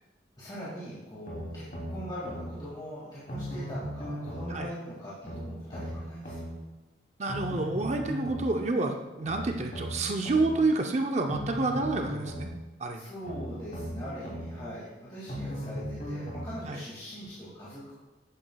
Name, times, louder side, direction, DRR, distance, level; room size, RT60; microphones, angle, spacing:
voice 1, 0.4-6.5 12.9-18.0, equal, 25° left, -9 dB, 2.1 m, -41 dB
sound 1, 1.3-2.5 3.3-4.5 5.2-6.5 7.3-8.5 9.2-10.5 11.3-12.5 13.2-14.5 15.3-16.5 17.2-17.3, equal, 50° left, 2.8 m, -37 dB
voice 2, 7.2-12.5 12.8-13.1 16.7-16.8, right 3 dB, 35° right, 4 dB, 0.5 m, -29 dB
10.5 x 8.9 x 2.3 m, 1.1 s
head